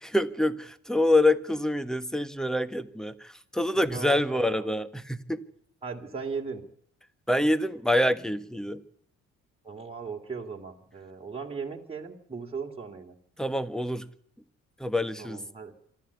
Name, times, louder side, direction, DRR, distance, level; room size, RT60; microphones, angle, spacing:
voice 1, 0.0-5.4 7.3-8.8 13.4-14.0 14.8-15.4, left 1 dB, ahead, 12 dB, 1.4 m, -26 dB
voice 2, 3.9-4.8 5.8-6.6 9.6-13.2 15.2-15.7, right 5 dB, 20° right, -1 dB, 2.9 m, -38 dB
26.0 x 13.0 x 8.4 m, 0.67 s
cardioid pair, 90°, 30 cm